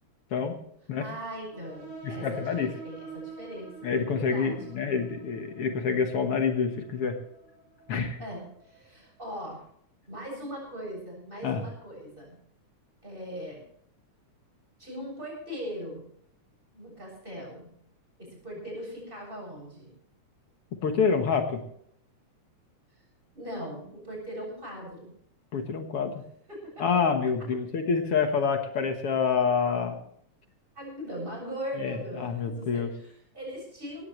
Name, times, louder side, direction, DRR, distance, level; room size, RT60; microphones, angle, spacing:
voice 1, 1.0-4.8 8.2-9.6 10.1-12.4 13.0-13.6 14.8-16.0 16.7-17.7 18.2-19.9 23.3-25.1 26.5-26.9 30.7-34.1, equal, 15° right, -1 dB, 7.5 m, -40 dB
sound 1, 1.5-8.8, right 4 dB, 70° right, 7.0 m, -47 dB
voice 2, 2.0-2.7 3.8-7.2 7.9-8.2 11.4-11.6 20.8-21.6 25.5-26.1 26.8-30.0 31.8-32.9, left 5 dB, 55° left, 5 dB, 2.0 m, -27 dB
18.5 x 15.5 x 3.2 m, 0.67 s
omnidirectional pair, 3.4 m